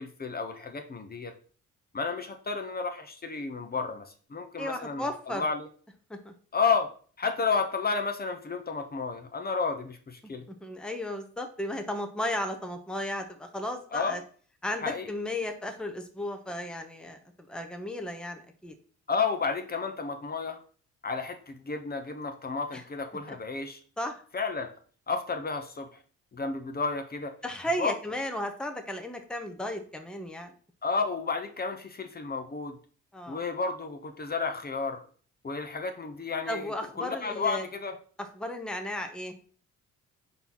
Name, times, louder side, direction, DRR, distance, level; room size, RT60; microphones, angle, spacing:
voice 1, 0.0-1.3 1.9-5.7 6.5-6.9 7.2-10.4 13.9-14.2 14.8-15.1 19.1-20.6 21.0-23.8 24.3-24.7 25.1-25.9 26.3-27.3 27.8-27.9 30.8-32.8 33.3-35.0 35.4-38.0, left 4 dB, 30° left, 6 dB, 1.0 m, -31 dB
voice 2, 4.6-5.4 6.1-6.3 10.5-14.2 14.6-17.2 17.5-18.7 22.7-22.8 24.0-24.2 27.4-30.5 33.1-33.4 36.5-37.6 38.2-39.3, left 1 dB, 5° left, 5 dB, 0.9 m, -34 dB
4.5 x 4.0 x 5.5 m, 0.43 s
cardioid pair, 90°, 30 cm